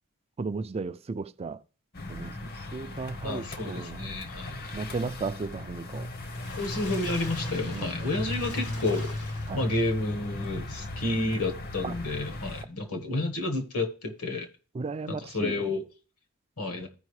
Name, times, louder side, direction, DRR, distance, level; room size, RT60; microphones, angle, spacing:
voice 1, 0.4-1.6 2.1-4.1 4.7-6.1 7.7-8.1 9.5-9.7 11.8-12.0 14.7-15.6, right 4 dB, 25° right, 0.3 m, -35 dB
sound 1, 1.9-12.7, left 2 dB, 45° left, 0.8 m, -37 dB
voice 2, 3.2-4.8 6.6-9.1 9.5-14.5 15.1-15.8 16.6-16.9, left 2 dB, 75° left, 1.4 m, -31 dB
Water / Splash splatter, 6.0-9.9 10.4-10.5 10.9-11.0, left 2 dB, 90° left, 2.4 m, -44 dB
14.0 x 5.2 x 3.2 m
head